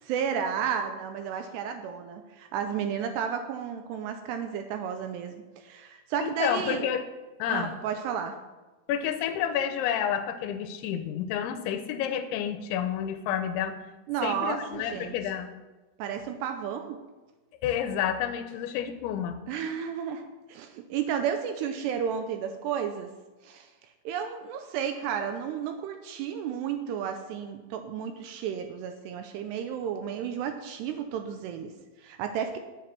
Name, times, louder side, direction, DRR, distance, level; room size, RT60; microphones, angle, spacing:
voice 1, 0.0-6.8 7.5-8.4 14.1-15.2 16.0-17.0 19.5-23.1 23.4-23.7 24.1-32.6, right 8 dB, 80° right, 6 dB, 2.5 m, -32 dB
voice 2, 6.2-7.0 7.4-7.7 8.9-13.8 14.2-15.5 17.6-19.4, left 9 dB, 85° left, 8 dB, 3.1 m, -29 dB
10.0 x 7.9 x 5.9 m, 1.2 s
omnidirectional pair, 5.4 m